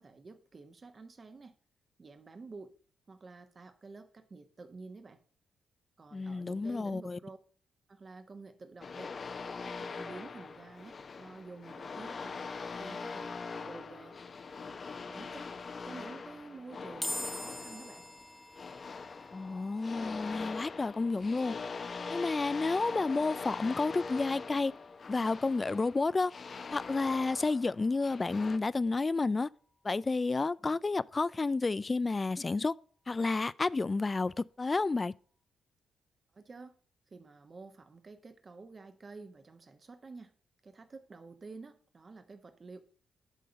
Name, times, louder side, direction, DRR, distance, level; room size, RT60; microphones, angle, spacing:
voice 1, 0.0-1.6 2.0-2.8 3.1-5.2 6.0-7.4 7.9-9.2 9.6-14.1 14.7-15.5 15.8-18.1 36.3-36.7 37.1-40.3 40.6-42.8, right 3 dB, 45° right, 1.2 m, -50 dB
voice 2, 6.1-7.2 19.3-21.5 22.1-24.7 25.1-26.3 26.7-29.5 29.8-32.7 33.1-35.1, left 3 dB, 35° left, 0.3 m, -30 dB
sound 1, 8.8-28.6, left 4 dB, 50° left, 0.8 m, -42 dB
sound 2, 17.0-30.3, left 1 dB, 5° left, 0.9 m, -48 dB
11.0 x 3.8 x 5.2 m
supercardioid pair, 50°, 0 cm